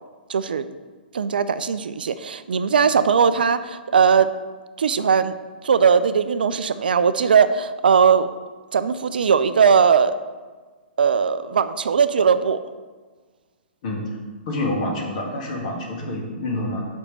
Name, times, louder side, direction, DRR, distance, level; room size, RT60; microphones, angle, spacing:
voice 1, 0.3-0.7 1.1-4.3 4.8-5.4 5.6-8.3 8.7-10.2 11.0-12.6, right 6 dB, 60° right, 13 dB, 0.4 m, -19 dB
voice 2, 14.5-16.9, left 1 dB, 45° left, -1 dB, 1.8 m, -27 dB
5.5 x 4.9 x 6.1 m, 1.4 s
figure-of-eight pair, 115°, 6 cm